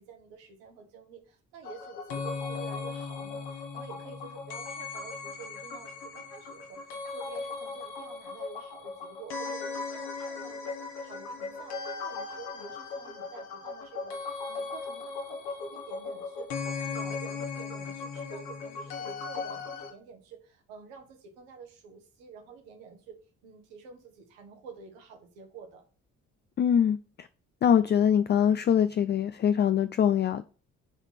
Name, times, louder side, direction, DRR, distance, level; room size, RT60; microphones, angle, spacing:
voice 1, 0.0-25.8, right 6 dB, 70° right, 3 dB, 1.6 m, -49 dB
sound 1, 1.6-19.9, left 4 dB, 65° left, 1.5 m, -37 dB
voice 2, 26.6-27.3 27.6-30.4, left 8 dB, 25° left, 12 dB, 0.4 m, -23 dB
7.2 x 4.1 x 6.1 m, 0.38 s
figure-of-eight pair, 40°, 42 cm